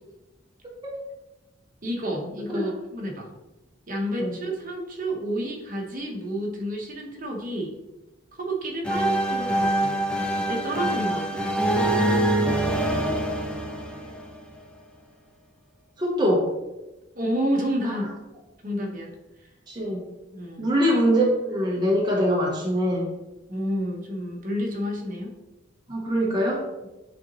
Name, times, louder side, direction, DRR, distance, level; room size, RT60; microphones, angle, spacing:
voice 1, 1.8-3.3 3.9-7.7 8.3-10.0 10.3-11.4 17.1-18.1 18.6-19.1 20.3-20.7 23.5-25.3, equal, 45° right, 0 dB, 1.2 m, -30 dB
sound 1, 8.8-14.6, right 1 dB, 5° left, 0.5 m, -24 dB
voice 2, 16.0-16.5 17.8-17.9 19.7-20.0 20.6-23.1 25.9-26.7, equal, 20° right, -3 dB, 0.9 m, -23 dB
9.2 x 3.8 x 3.0 m, 1.0 s
head